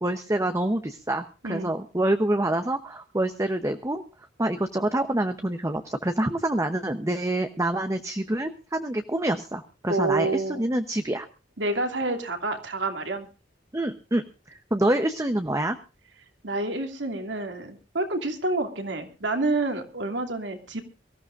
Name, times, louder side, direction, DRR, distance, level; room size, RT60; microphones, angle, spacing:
voice 1, 0.0-4.0 4.4-11.3 13.7-15.8, right 1 dB, 15° right, 7 dB, 0.8 m, -26 dB
voice 2, 9.9-10.6 11.6-13.3 16.4-20.8, right 2 dB, 75° right, 5 dB, 2.8 m, -28 dB
23.5 x 15.0 x 2.5 m, 0.33 s
head